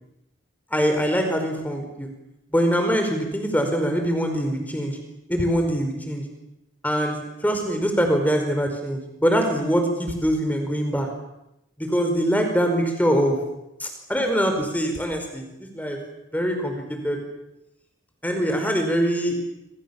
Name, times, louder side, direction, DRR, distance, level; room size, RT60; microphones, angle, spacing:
voice 1, 0.7-2.1 2.5-5.0 5.3-6.2 6.8-11.1 11.8-13.4 13.8-16.0 16.3-17.2 18.2-19.4, equal, 10° left, 4 dB, 5.1 m, -23 dB
27.5 x 25.5 x 7.3 m, 0.88 s
head